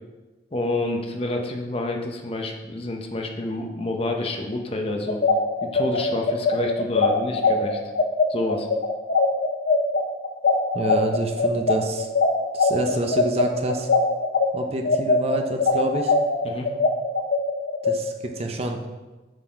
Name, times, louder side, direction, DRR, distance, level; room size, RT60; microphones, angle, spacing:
voice 1, 0.5-5.2 5.6-7.8 8.3-8.7 16.4-16.7, left 2 dB, 30° left, 2 dB, 0.7 m, -28 dB
sound 1, 5.1-14.5 14.8-17.9, left 4 dB, 65° left, 0.7 m, -21 dB
voice 2, 10.7-12.1 12.5-13.9 14.5-16.1 17.8-18.8, right 1 dB, 35° right, 4 dB, 0.6 m, -27 dB
7.7 x 4.1 x 4.7 m, 1.2 s
head